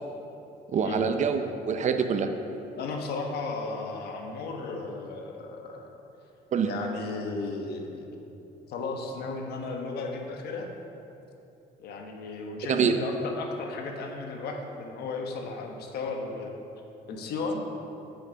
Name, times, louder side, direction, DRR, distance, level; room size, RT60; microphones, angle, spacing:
voice 1, 0.7-2.3 6.5-6.7 12.7-13.0, right 6 dB, 45° right, 7 dB, 0.6 m, -25 dB
voice 2, 2.8-5.9 6.7-8.2 8.7-10.7 11.8-16.5 17.1-17.6, left 3 dB, 70° left, 2 dB, 1.2 m, -35 dB
8.2 x 6.5 x 5.2 m, 2.9 s
cardioid pair, 110°, 17 cm